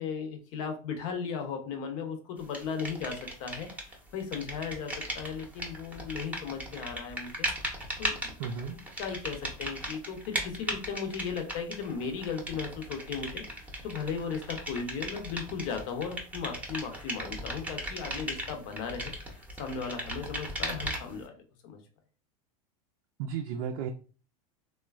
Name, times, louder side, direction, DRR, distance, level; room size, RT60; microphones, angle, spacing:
voice 1, 0.0-7.5 8.0-8.3 8.7-21.4 21.6-21.8, left 6 dB, 60° left, 5 dB, 0.8 m, -36 dB
sound 1, 2.5-3.9 4.2-21.2, right 1 dB, 10° right, 0.7 m, -37 dB
voice 2, 8.4-8.8 23.2-23.9, right 7 dB, 70° right, 4 dB, 0.4 m, -34 dB
3.1 x 2.2 x 2.3 m, 0.38 s
hypercardioid pair, 110°, 19 cm